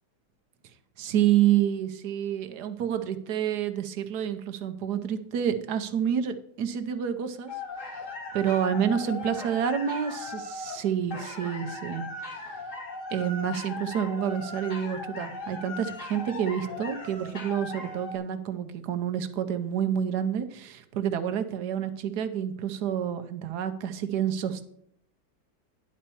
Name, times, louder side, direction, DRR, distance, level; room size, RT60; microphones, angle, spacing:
voice 1, 1.0-7.5 8.3-12.1 13.1-24.6, right 9 dB, 70° right, 9 dB, 1.3 m, -28 dB
sound 1, 7.5-18.2, left 3 dB, 45° left, 2.1 m, -38 dB
11.0 x 4.3 x 6.9 m, 0.68 s
omnidirectional pair, 1.9 m